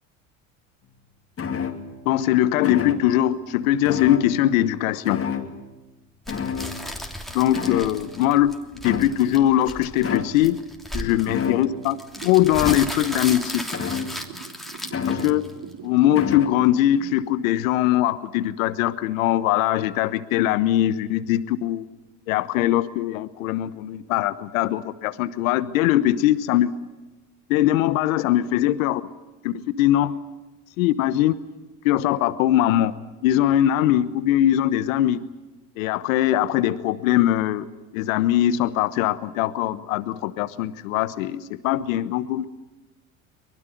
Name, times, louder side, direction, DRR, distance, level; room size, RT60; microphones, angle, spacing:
sound 1, 1.4-2.1 2.6-3.3 3.8-4.7 5.0-5.7 6.3-7.2 7.5-8.3 8.8-9.4 10.0-10.5 11.3-11.9 12.6-13.1 13.7-14.4 14.9-15.6 16.1-16.6, left 6 dB, 35° left, 2.9 m, -30 dB
voice 1, 2.0-5.3 7.3-8.5 8.8-10.6 10.9-12.0 12.2-13.6 15.1-15.4 15.8-21.8 22.3-26.7 27.5-29.0 29.4-30.1 30.8-31.3 31.8-32.9 33.2-35.2 35.8-37.7 37.9-42.5, left 13 dB, 80° left, 14 dB, 1.2 m, -21 dB
sound 2, 6.3-15.7, equal, ahead, 3.0 m, -35 dB
sound 3, 12.1-17.1, right 8 dB, 65° right, 4.5 m, -44 dB
24.0 x 20.5 x 9.3 m, 1.1 s
supercardioid pair, 85°, 39 cm